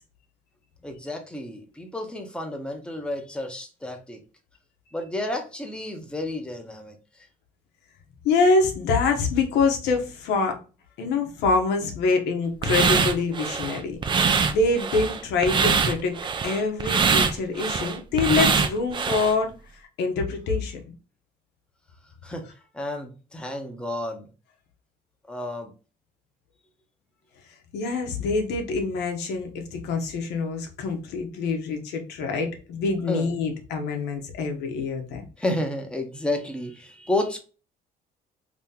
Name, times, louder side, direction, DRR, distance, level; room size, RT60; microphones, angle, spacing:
voice 1, 0.8-4.2 4.9-7.3 22.2-22.5 22.7-24.3 25.3-25.7 33.1-33.3 35.4-37.4, left 1 dB, 5° left, 3 dB, 0.8 m, -31 dB
voice 2, 8.2-10.6 11.0-16.2 16.4-19.5 20.0-20.8 27.7-35.2, left 4 dB, 80° left, 4 dB, 0.9 m, -25 dB
sound 1, 12.6-19.3, right 5 dB, 30° right, 0.4 m, -23 dB
2.9 x 2.8 x 3.5 m, 0.34 s
cardioid pair, 110°, 17 cm